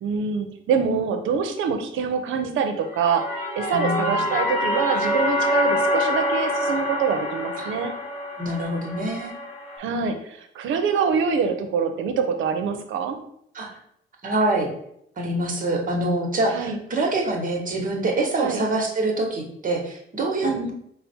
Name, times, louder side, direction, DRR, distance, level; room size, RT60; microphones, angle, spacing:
voice 1, 0.0-7.9 9.8-13.2 16.5-16.8 18.4-18.6 20.4-20.7, right 6 dB, 80° right, 6 dB, 0.6 m, -25 dB
sound 1, 2.8-9.8, left 1 dB, 10° right, 0.9 m, -26 dB
voice 2, 3.7-4.3 7.6-7.7 8.4-9.3 13.5-13.7 14.2-14.7 15.2-20.7, right 2 dB, 45° right, 1 dB, 1.0 m, -25 dB
4.1 x 2.0 x 4.3 m, 0.72 s
cardioid pair, 90°, 20 cm